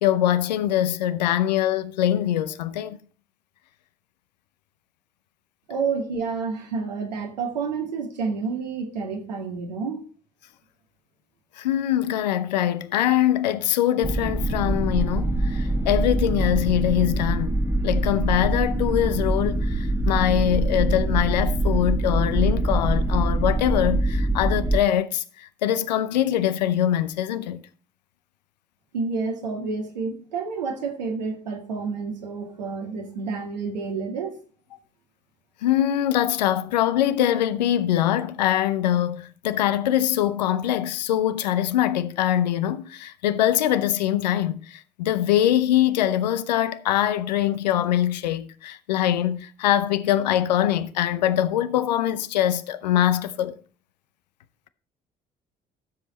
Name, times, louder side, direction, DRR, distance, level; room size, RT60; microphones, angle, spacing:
voice 1, 0.0-3.0 11.6-27.6 35.6-53.5, left 11 dB, 85° left, 0.7 m, -23 dB
voice 2, 5.7-10.0 28.9-34.4, right 5 dB, 85° right, 1.9 m, -29 dB
sound 1, 14.0-24.8, right 1 dB, 15° right, 1.1 m, -24 dB
13.0 x 7.3 x 4.2 m
hypercardioid pair, 50°, 21 cm